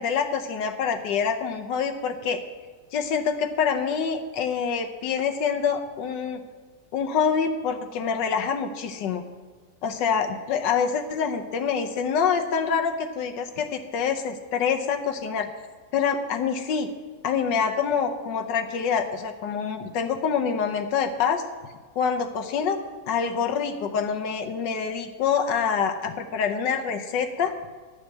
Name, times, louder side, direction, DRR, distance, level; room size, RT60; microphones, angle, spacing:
voice 1, 0.0-2.4 2.9-6.4 6.9-9.2 9.8-15.5 15.9-16.9 17.2-21.4 22.0-22.8 23.1-27.5, left 6 dB, 85° left, 5 dB, 1.5 m, -26 dB
11.5 x 6.9 x 6.6 m, 1.5 s
omnidirectional pair, 1.9 m